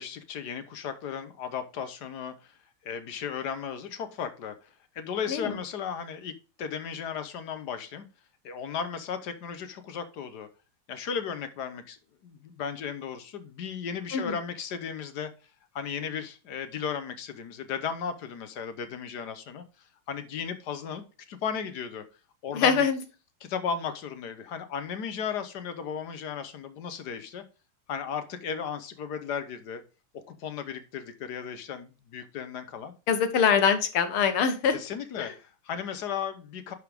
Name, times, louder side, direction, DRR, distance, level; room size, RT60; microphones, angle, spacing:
voice 1, 0.0-2.6 2.8-4.5 4.9-6.3 6.6-8.1 8.4-10.5 10.9-15.3 15.7-19.6 20.1-22.0 22.4-22.8 23.4-27.4 27.9-29.8 30.1-32.9 34.7-36.7, left 7 dB, 55° left, 1.3 m, -35 dB
voice 2, 22.5-23.0 33.1-34.8 35.2-35.3, left 6 dB, 75° left, 2.0 m, -24 dB
11.0 x 4.9 x 3.4 m
omnidirectional pair, 2.4 m